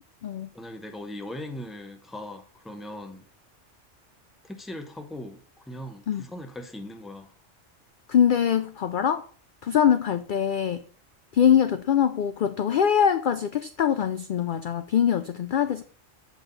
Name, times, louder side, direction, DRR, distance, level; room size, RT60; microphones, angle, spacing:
voice 1, 0.5-3.3 4.4-7.3, left 1 dB, ahead, 0.7 m, -39 dB
voice 2, 8.1-9.3 9.6-10.8 11.3-15.8, left 8 dB, 60° left, 0.5 m, -23 dB
7.5 x 5.5 x 3.9 m
omnidirectional pair, 1.2 m